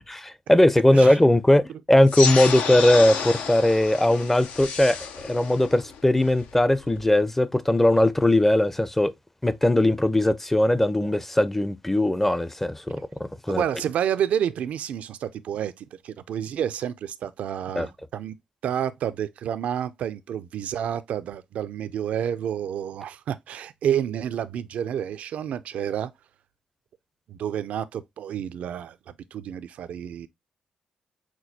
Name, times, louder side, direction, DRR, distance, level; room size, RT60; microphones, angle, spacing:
voice 1, 0.5-1.6 1.9-5.0 5.2-9.1 9.4-13.1 13.5-13.6 17.8-17.9, left 1 dB, 10° left, 0.5 m, -19 dB
sound 1, 2.1-7.1, left 6 dB, 80° left, 0.5 m, -31 dB
voice 2, 13.5-18.3 18.6-26.1 27.3-30.3, right 9 dB, 75° right, 0.3 m, -29 dB
6.0 x 2.3 x 2.6 m
supercardioid pair, 60°, 2 cm